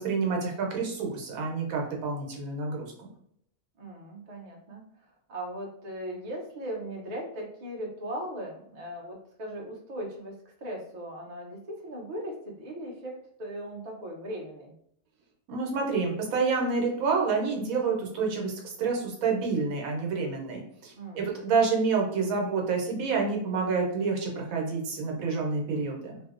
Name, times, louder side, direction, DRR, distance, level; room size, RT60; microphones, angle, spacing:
voice 1, 0.0-3.1 15.5-26.2, right 4 dB, 80° right, 0 dB, 1.1 m, -28 dB
voice 2, 3.8-4.8 5.3-10.4 10.6-14.7 20.9-21.3, right 1 dB, 50° right, -2 dB, 0.5 m, -38 dB
2.6 x 2.0 x 2.4 m, 0.71 s
omnidirectional pair, 1.4 m